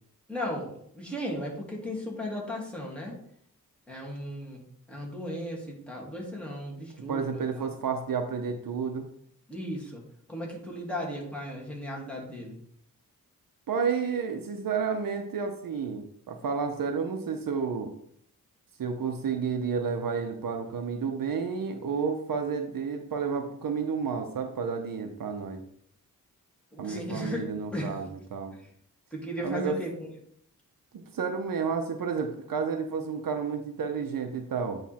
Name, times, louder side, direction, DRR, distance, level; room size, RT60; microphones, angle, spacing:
voice 1, 0.3-3.2 3.9-4.6 4.9-7.7 9.5-10.0 10.3-12.6 26.7-28.0 28.5-28.7 29.1-30.0, equal, 5° left, -3 dB, 2.5 m, -36 dB
voice 2, 7.1-9.1 13.7-17.9 18.8-25.6 26.8-28.5 29.4-29.8 30.9-34.8, right 5 dB, 70° right, 5 dB, 0.9 m, -31 dB
9.3 x 3.4 x 4.3 m, 0.66 s
cardioid pair, 80°, 34 cm